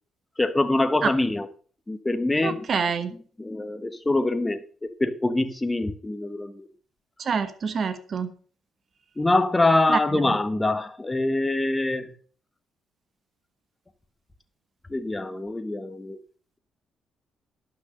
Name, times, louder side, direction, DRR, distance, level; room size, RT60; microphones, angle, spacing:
voice 1, 0.4-1.5 1.9-2.7 3.4-6.6 9.2-12.1 14.9-16.2, left 2 dB, 15° left, 1.1 m, -24 dB
voice 2, 2.4-3.1 7.2-8.3 9.9-10.0 10.2-10.3, right 6 dB, 50° right, 1.3 m, -26 dB
11.5 x 6.2 x 6.5 m
cardioid pair, 90°, 0 cm